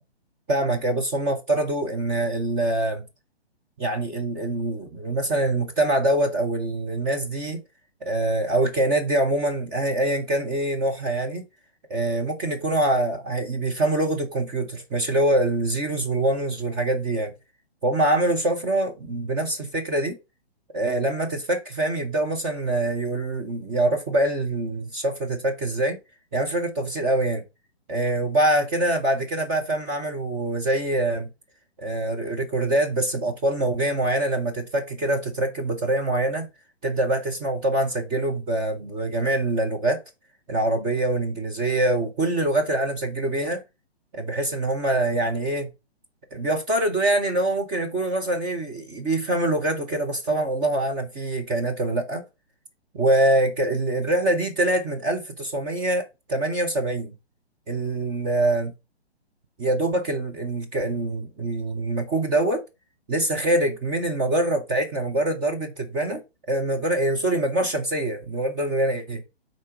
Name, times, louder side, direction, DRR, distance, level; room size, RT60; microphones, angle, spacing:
voice 1, 0.5-3.0 3.8-7.6 8.0-11.4 11.9-17.3 17.8-20.2 20.7-26.0 26.3-27.4 27.9-31.3 31.8-36.5 36.8-40.0 40.5-43.6 44.1-45.7 46.3-52.2 52.9-56.0 56.3-57.1 57.7-58.7 59.6-62.6 63.1-69.2, right 1 dB, 10° right, 0.5 m, -24 dB
5.5 x 3.8 x 4.5 m
figure-of-eight pair, 130°, 32 cm